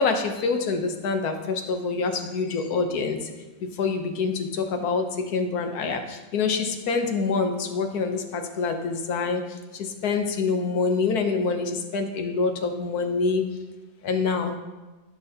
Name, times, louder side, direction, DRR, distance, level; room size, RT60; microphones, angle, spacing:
voice 1, 0.0-3.2 3.8-5.0 5.3-6.0 6.3-9.4 10.0-13.4 14.0-14.5, left 4 dB, 70° left, 6 dB, 1.3 m, -25 dB
13.0 x 6.2 x 2.8 m, 1.2 s
omnidirectional pair, 1.7 m